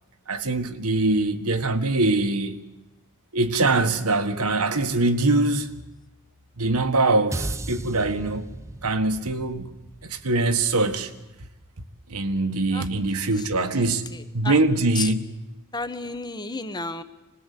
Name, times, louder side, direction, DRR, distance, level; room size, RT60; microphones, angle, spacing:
voice 1, 0.3-2.6 3.3-5.7 6.6-8.5 8.8-9.8 10.0-11.1 12.1-14.1 14.3-15.2, right 2 dB, 90° right, 1.7 m, -23 dB
sound 1, 7.3-11.7, right 1 dB, 15° right, 0.7 m, -37 dB
voice 2, 13.3-14.6 14.9-15.1 15.7-17.0, left 3 dB, 20° left, 1.1 m, -33 dB
25.5 x 20.0 x 8.5 m
head